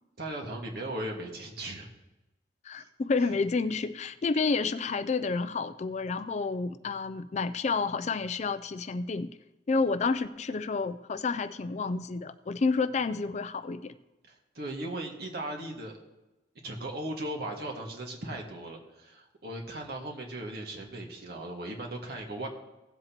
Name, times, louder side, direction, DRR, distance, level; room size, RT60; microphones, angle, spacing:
voice 1, 0.2-1.9 2.7-2.9 3.2-3.4 14.2-15.9 16.6-22.5, right 1 dB, 60° right, 0 dB, 1.8 m, -37 dB
voice 2, 2.6-9.3 9.7-13.9, left 4 dB, 40° left, 13 dB, 0.4 m, -30 dB
17.0 x 7.7 x 3.0 m, 1.0 s
head